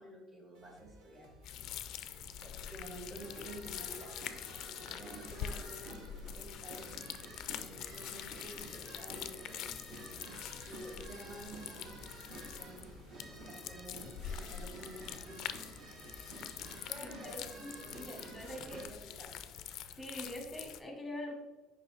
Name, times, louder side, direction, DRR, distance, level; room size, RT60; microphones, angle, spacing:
voice 1, 0.0-6.9 7.3-10.3 10.7-12.1 12.6-13.0 13.3-16.4 16.9-18.4 18.7-19.5, right 1 dB, 20° right, 0 dB, 1.5 m, -52 dB
sound 1, 0.5-20.0, right 1 dB, 80° right, 1.2 m, -60 dB
sound 2, 1.4-20.8, left 10 dB, 50° left, 0.4 m, -45 dB
sound 3, 3.2-18.9, right 2 dB, 45° right, 1.1 m, -51 dB
voice 2, 17.0-18.9 20.0-21.3, left 1 dB, ahead, 1 dB, 1.3 m, -44 dB
6.6 x 5.2 x 3.3 m, 1.1 s
cardioid pair, 170°, 0 cm